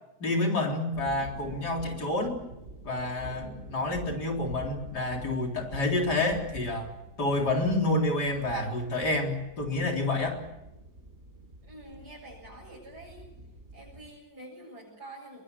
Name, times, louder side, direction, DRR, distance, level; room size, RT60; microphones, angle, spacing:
voice 1, 0.2-2.4 2.8-6.9 7.2-10.4, left 2 dB, 80° left, 1 dB, 4.5 m, -28 dB
sound 1, 0.9-14.1, right 1 dB, 40° right, 3.7 m, -47 dB
voice 2, 11.6-13.3 13.7-15.4, right 1 dB, 80° right, -5 dB, 8.2 m, -47 dB
23.0 x 21.5 x 8.3 m, 0.91 s
omnidirectional pair, 1.7 m